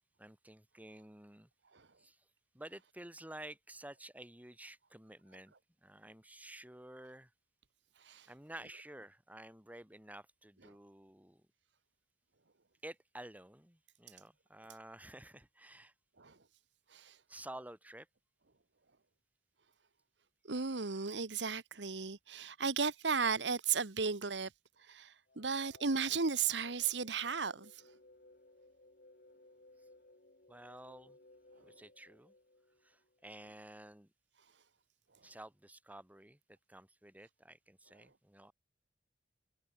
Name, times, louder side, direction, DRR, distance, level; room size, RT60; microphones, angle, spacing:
voice 1, 0.2-1.5 2.0-2.2 2.5-5.5 5.8-7.3 8.3-11.4 12.8-15.9 17.3-18.1 30.5-31.2 31.6-32.3 32.8-34.1 35.2-36.4 36.7-38.5, right 1 dB, 10° right, 2.4 m, -52 dB
voice 2, 20.5-24.5 24.9-27.7, right 5 dB, 70° right, 1.4 m, -35 dB
sound 1, 25.3-33.2, left 2 dB, 55° left, 5.2 m, -62 dB
head